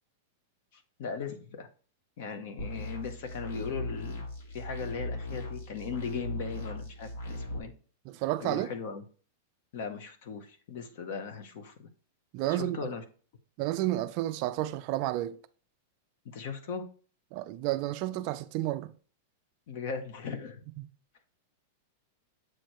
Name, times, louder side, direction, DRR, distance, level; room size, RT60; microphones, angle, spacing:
voice 1, 0.7-1.7 2.2-4.3 4.5-7.7 8.4-9.0 9.7-11.9 12.4-13.0 16.2-16.9 19.7-20.6, left 5 dB, 45° left, 0.9 m, -38 dB
sound 1, 2.6-7.6, left 1 dB, 85° left, 2.2 m, -38 dB
voice 2, 8.1-8.7 12.3-12.8 13.6-15.4 17.3-18.9, right 15 dB, 35° right, 0.3 m, -31 dB
7.7 x 3.2 x 4.4 m
supercardioid pair, 175°, 0 cm